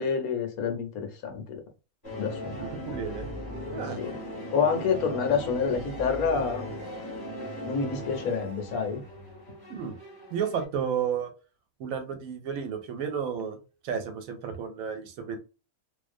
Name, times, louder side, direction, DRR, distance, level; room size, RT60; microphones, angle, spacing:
voice 1, 0.0-1.6 2.2-2.7 4.0-4.1 4.5-6.7 7.6-9.0, left 6 dB, 75° left, 1.1 m, -28 dB
sound 1, 2.0-10.6, equal, 20° left, 0.7 m, -38 dB
voice 2, 2.9-3.3 3.7-4.0 9.7-10.0 10.3-11.3 11.8-13.6 13.8-15.4, right 7 dB, 70° right, 0.9 m, -32 dB
2.5 x 2.1 x 2.4 m
omnidirectional pair, 1.6 m